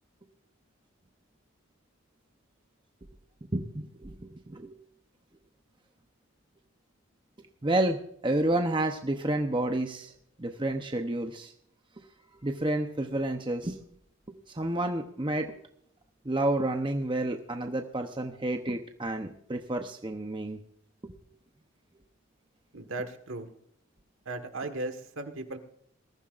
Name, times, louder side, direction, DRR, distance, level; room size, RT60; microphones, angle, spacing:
voice 1, 3.5-4.8 7.6-10.1 10.4-11.5 12.4-13.8 14.3-15.6 16.2-20.6 21.0-21.1, right 1 dB, 20° right, 5 dB, 0.8 m, -30 dB
voice 2, 22.7-23.5 24.2-25.6, right 2 dB, 65° right, 7 dB, 1.6 m, -36 dB
21.0 x 14.5 x 2.5 m, 0.69 s
head